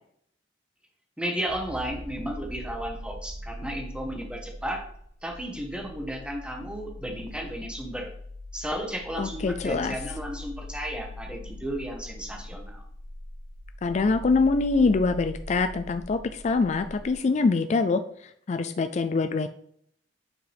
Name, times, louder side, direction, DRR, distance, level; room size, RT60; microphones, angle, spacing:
voice 1, 1.2-4.8 5.2-8.1 8.5-12.8, equal, 5° right, 2 dB, 1.2 m, -34 dB
sound 1, 1.5-17.1, left 1 dB, 40° right, 1.4 m, -41 dB
voice 2, 9.2-9.9 13.8-18.0 18.5-19.5, left 4 dB, 40° left, 9 dB, 0.3 m, -24 dB
8.8 x 4.8 x 3.4 m, 0.67 s
head